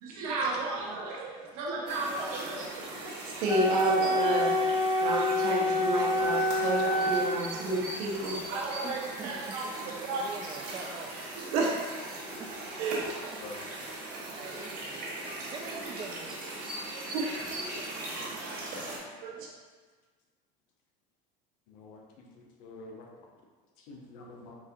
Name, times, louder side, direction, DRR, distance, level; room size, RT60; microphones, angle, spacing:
voice 1, 0.0-2.9 3.2-4.5 5.0-10.3 11.4-12.0 12.8-13.2 16.9-17.8 18.1-19.5, right 3 dB, 85° right, -2 dB, 0.8 m, -33 dB
sound 1, 1.9-19.0, right 2 dB, 55° right, 1.1 m, -40 dB
Wind instrument woodwind instrument, 3.4-7.3, left 1 dB, 35° left, 0.6 m, -26 dB
voice 2, 8.8-9.3 9.8-11.1 12.4-12.5 13.2-13.4 14.1-16.8 17.8-18.1, right 4 dB, 25° right, 2 dB, 0.4 m, -45 dB
voice 3, 21.7-23.3 23.8-24.6, left 2 dB, 85° left, 0 dB, 0.7 m, -48 dB
3.9 x 2.7 x 2.5 m, 1.4 s
cardioid pair, 125°, 19 cm